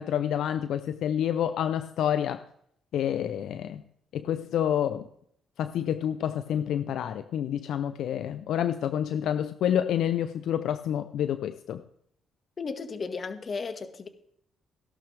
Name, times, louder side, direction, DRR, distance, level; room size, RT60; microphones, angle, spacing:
voice 1, 0.0-2.4 2.9-3.8 4.1-5.1 5.6-11.8, left 10 dB, 75° left, 11 dB, 0.5 m, -28 dB
voice 2, 12.6-14.1, left 4 dB, 45° left, 7 dB, 1.7 m, -34 dB
16.5 x 12.0 x 3.4 m, 0.70 s
cardioid pair, 90°, 0 cm